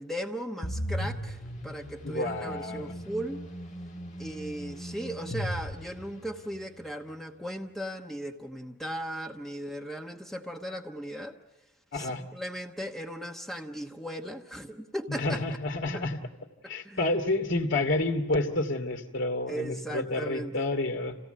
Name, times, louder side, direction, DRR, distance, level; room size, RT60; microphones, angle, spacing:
voice 1, 0.0-3.4 4.2-11.4 11.9-15.4 15.9-16.0 16.6-17.1 19.5-20.7, right 1 dB, ahead, 3 dB, 1.1 m, -37 dB
sound 1, 0.6-6.6, equal, 35° left, 1.5 m, -37 dB
voice 2, 2.0-2.9 11.9-12.2 15.1-16.2 16.7-21.2, left 2 dB, 60° left, 5 dB, 2.6 m, -29 dB
28.0 x 17.5 x 8.0 m, 1.2 s
head